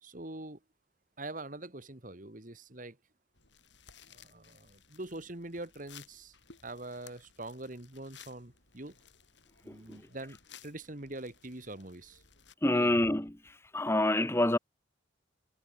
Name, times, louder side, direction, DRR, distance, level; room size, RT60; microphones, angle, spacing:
voice 1, 0.0-0.6 1.2-3.0 4.1-6.4 6.6-9.0 9.6-12.2 12.6-13.0, right 2 dB, 40° right, 1.8 m, -44 dB
sound 1, 3.3-12.5, left 8 dB, 65° left, 6.8 m, -58 dB
voice 2, 9.7-10.0 12.6-13.4 13.7-14.6, left 1 dB, 10° left, 0.9 m, -27 dB
head